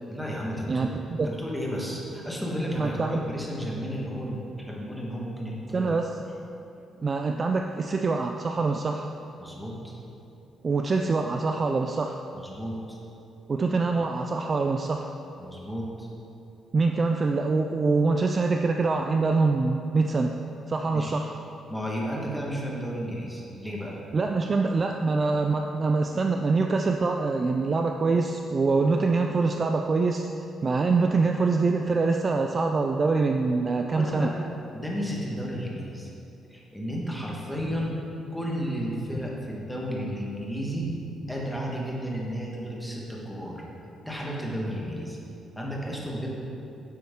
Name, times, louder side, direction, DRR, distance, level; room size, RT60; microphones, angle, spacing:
voice 1, 0.1-0.9 1.2-5.9 9.4-9.9 12.3-13.0 15.4-16.1 20.9-21.2 21.7-24.0 33.9-34.4 34.7-36.1 36.5-38.0 38.3-40.9 41.2-43.6 44.0-45.2 45.5-46.3, equal, ahead, -4 dB, 1.3 m, -33 dB
voice 2, 2.8-3.2 5.7-6.2 7.0-9.1 10.6-12.2 13.5-15.1 16.7-20.4 20.7-21.3 24.1-30.3 30.6-34.3, right 3 dB, 30° right, 4 dB, 0.3 m, -24 dB
9.7 x 7.5 x 3.6 m, 2.8 s
cardioid pair, 160°, 0 cm